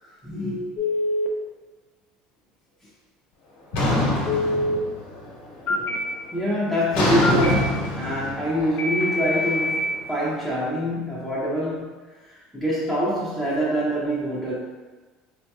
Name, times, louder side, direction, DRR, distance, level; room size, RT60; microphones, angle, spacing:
voice 1, 0.0-0.7 5.7-5.8 6.3-9.8 10.1-11.9 12.2-14.5, equal, ahead, -10 dB, 0.7 m, -25 dB
Telephone, 0.8-1.3 4.3-4.8 5.7-6.0 7.2-7.5 8.8-9.8, left 2 dB, 55° left, 0.5 m, -24 dB
sound 1, 3.7-5.3 5.6-6.1 6.9-10.0, left 1 dB, 80° left, 1.2 m, -25 dB
3.7 x 2.8 x 2.3 m, 1.3 s
cardioid pair, 130°, 3 cm